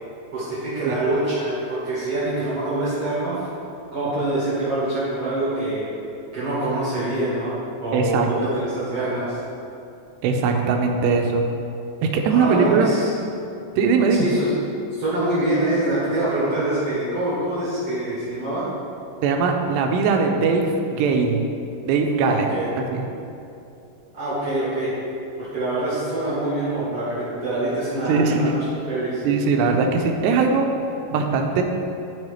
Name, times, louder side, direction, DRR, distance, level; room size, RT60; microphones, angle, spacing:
voice 1, 0.3-3.5 3.9-5.8 6.3-7.5 7.8-9.4 12.3-13.1 14.2-14.5 15.0-18.6 22.2-22.6 24.1-24.9 25.4-28.6 28.9-29.2, right 1 dB, 65° right, -9 dB, 1.5 m, -25 dB
voice 2, 7.9-8.3 10.2-11.5 12.0-12.9 13.8-14.3 19.2-21.4 21.9-22.5 22.9-23.0 28.1-28.5 29.2-30.7 31.1-31.6, right 4 dB, 85° right, 3 dB, 2.7 m, -20 dB
12.5 x 4.7 x 3.2 m, 2.7 s
omnidirectional pair, 5.0 m